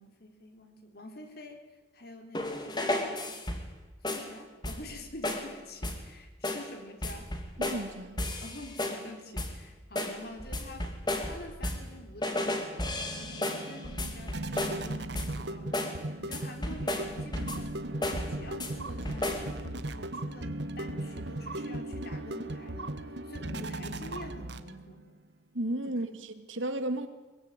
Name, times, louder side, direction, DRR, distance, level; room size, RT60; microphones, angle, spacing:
voice 1, 0.0-1.6 1.9-3.4 4.1-7.3 8.4-11.0 11.2-17.8 18.0-25.1, left 1 dB, 55° left, 3.7 m, -47 dB
sound 1, 2.3-3.8 4.0-4.3 4.6-5.0 5.2-5.5 5.8-6.1 6.4-6.7 7.0-7.9 8.2-9.1 9.4-9.6 10.0-11.9 12.2-14.9 15.1-15.4 15.7-16.0 16.3-17.7 18.0-18.7 19.0-19.5, left 1 dB, 20° left, 2.5 m, -34 dB
voice 2, 7.6-8.2 25.5-27.1, right 1 dB, 85° right, 2.1 m, -33 dB
sound 2, 12.2-25.0, right 1 dB, 60° right, 1.3 m, -38 dB
22.5 x 22.5 x 9.0 m
head